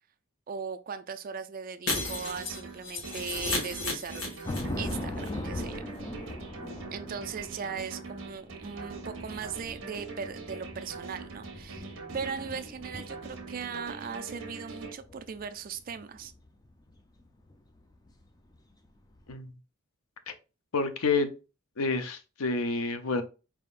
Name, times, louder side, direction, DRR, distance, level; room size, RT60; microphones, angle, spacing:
voice 1, 0.5-4.3 4.8-5.9 6.9-16.3, right 6 dB, 40° right, 0.4 m, -38 dB
Shatter, 1.9-4.9 5.2-5.3 5.6-5.7, left 2 dB, 65° left, 1.8 m, -34 dB
sound 1, 2.0-14.9, right 4 dB, 60° right, 1.0 m, -43 dB
sound 2, 4.5-18.9 19.1-19.3, left 1 dB, 20° left, 0.4 m, -41 dB
voice 2, 20.7-21.3 21.8-23.2, left 3 dB, 90° left, 0.6 m, -28 dB
4.4 x 3.5 x 2.4 m
head